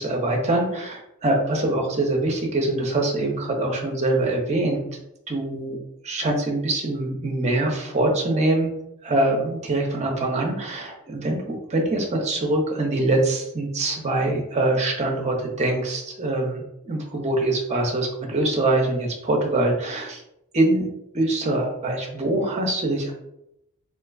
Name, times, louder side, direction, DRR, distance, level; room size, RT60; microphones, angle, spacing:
voice 1, 0.0-4.9 5.3-5.8 6.0-8.7 9.0-20.2 20.5-20.9 21.1-23.1, right 2 dB, 30° right, 1 dB, 0.6 m, -24 dB
3.6 x 2.4 x 2.3 m, 0.82 s
head